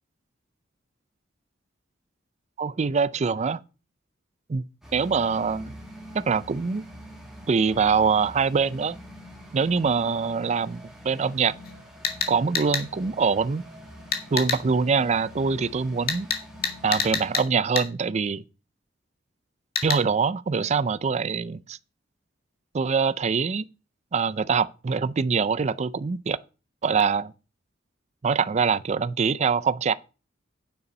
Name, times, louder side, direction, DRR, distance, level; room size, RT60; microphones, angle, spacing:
voice 1, 2.6-3.6 4.5-4.6 4.9-5.8 6.1-6.8 7.5-9.0 9.5-11.6 12.3-13.6 14.3-16.3 16.8-18.4 19.8-21.8 22.7-23.6 24.1-26.4 26.8-27.3 28.2-29.9, right 5 dB, 35° right, 0.4 m, -24 dB
sound 1, 4.8-17.4, equal, 5° right, 2.3 m, -45 dB
sound 2, 11.6-11.7 12.0-12.9 14.1-14.6 16.1-17.5 17.8-17.9 19.8-20.0, left 6 dB, 55° left, 1.9 m, -27 dB
9.4 x 6.8 x 5.3 m
head